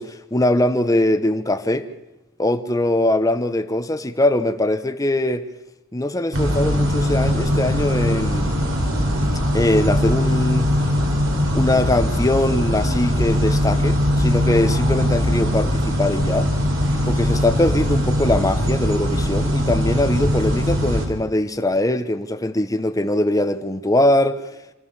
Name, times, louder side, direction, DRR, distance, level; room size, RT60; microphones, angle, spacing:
voice 1, 0.0-1.9 2.4-5.4 5.9-8.5 9.5-10.7 11.5-16.5 17.1-24.5, left 1 dB, 15° left, 1.0 m, -21 dB
sound 1, 6.3-21.1, equal, 65° right, 3.5 m, -20 dB
27.5 x 13.0 x 7.2 m
head